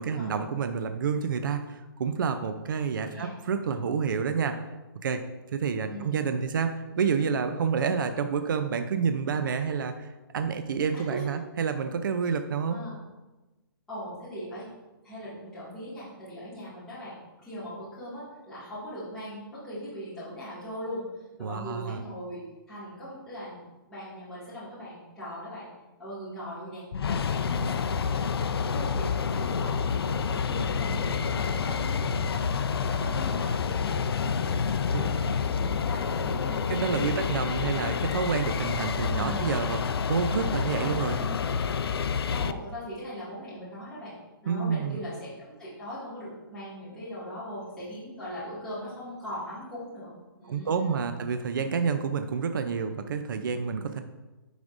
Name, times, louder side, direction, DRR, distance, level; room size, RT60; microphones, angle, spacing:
voice 1, 0.0-4.6 5.0-5.2 5.5-10.1 10.3-12.8 21.4-22.0 34.9-35.1 36.7-41.2 44.5-45.0 50.5-54.0, right 6 dB, 55° right, 8 dB, 0.5 m, -29 dB
voice 2, 12.7-13.0 13.9-14.7 15.0-23.6 23.9-25.7 26.0-32.4 32.8-34.5 34.8-36.6 39.2-39.4 41.1-41.3 42.3-44.1 44.4-50.1 50.4-51.2, equal, 5° left, -13 dB, 2.0 m, -40 dB
sound 1, 26.9-42.5, left 6 dB, 80° left, 0.4 m, -28 dB
9.6 x 5.1 x 2.6 m, 1.1 s
hypercardioid pair, 165°, 13 cm